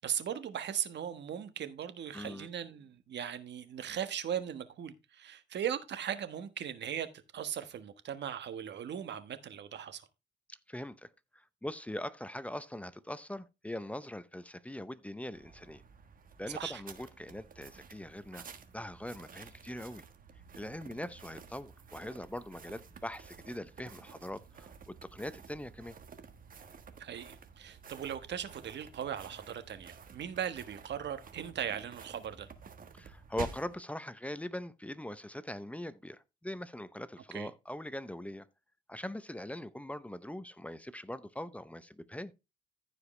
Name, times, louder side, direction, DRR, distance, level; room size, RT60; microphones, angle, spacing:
voice 1, 0.0-7.1 7.3-10.1 16.5-16.8 27.0-32.5 37.3-37.5, right 9 dB, 60° right, 1.3 m, -38 dB
voice 2, 2.1-2.5 10.5-15.8 16.4-18.5 18.7-20.0 20.5-26.0 32.9-38.5 38.9-42.3, left 1 dB, 5° left, 0.6 m, -42 dB
sound 1, 15.3-33.8, right 6 dB, 45° right, 1.3 m, -51 dB
15.0 x 5.0 x 3.2 m
cardioid pair, 90°, 20 cm